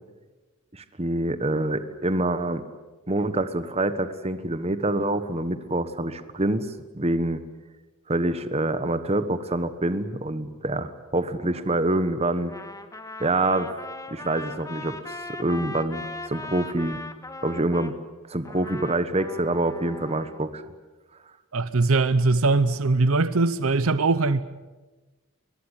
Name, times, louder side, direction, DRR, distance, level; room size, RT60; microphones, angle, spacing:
voice 1, 0.7-2.6 3.1-6.7 6.9-7.4 8.1-12.5 13.2-13.7 14.1-17.0 17.4-18.0 18.3-20.6, right 2 dB, 30° right, 1.2 m, -26 dB
Trumpet, 12.4-17.9 18.4-20.4, left 2 dB, 15° left, 1.5 m, -39 dB
voice 2, 21.5-24.4, right 3 dB, 75° right, 0.8 m, -21 dB
23.0 x 21.0 x 9.9 m
head